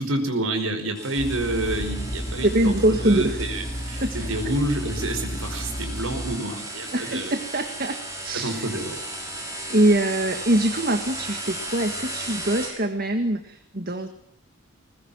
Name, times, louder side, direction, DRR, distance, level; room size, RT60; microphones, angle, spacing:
voice 1, 0.0-7.3 8.3-9.0, right 1 dB, 75° right, 7 dB, 5.2 m, -28 dB
sound 1, 0.9-12.7, right 1 dB, 15° right, 6.2 m, -36 dB
sound 2, 1.2-6.4, equal, 30° left, 3.8 m, -32 dB
voice 2, 2.4-3.4 4.0-4.1 6.9-8.8 9.7-14.1, right 1 dB, 45° right, 7 dB, 1.8 m, -23 dB
21.0 x 20.5 x 7.4 m, 0.70 s
head